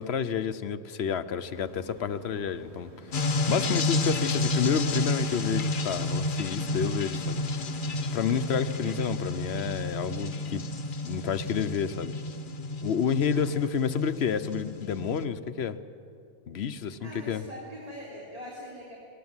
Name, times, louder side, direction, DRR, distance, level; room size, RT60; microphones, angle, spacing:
voice 1, 0.0-7.4 8.1-10.7 11.0-12.1 12.8-15.8 16.5-17.4, left 7 dB, 75° left, 12 dB, 1.1 m, -30 dB
sound 1, 1.4-9.1, equal, 90° right, 2.7 m, -50 dB
sound 2, 3.1-15.2, left 2 dB, 50° left, 1.1 m, -31 dB
voice 2, 13.3-13.6 17.0-18.9, equal, 35° right, -4 dB, 3.3 m, -42 dB
20.0 x 18.5 x 9.6 m, 2.6 s
omnidirectional pair, 1.1 m